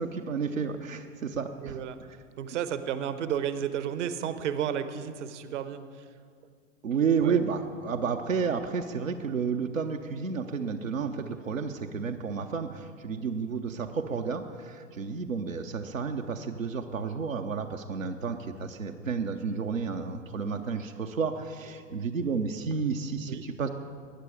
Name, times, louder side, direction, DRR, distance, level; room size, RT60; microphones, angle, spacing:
voice 1, 0.0-1.8 6.8-23.7, right 5 dB, 85° right, 4 dB, 0.8 m, -31 dB
voice 2, 1.6-2.0 2.4-6.0 7.2-7.4 23.3-23.5, right 9 dB, 65° right, 11 dB, 1.0 m, -32 dB
19.5 x 10.0 x 4.9 m, 2.1 s
figure-of-eight pair, 90°, 39 cm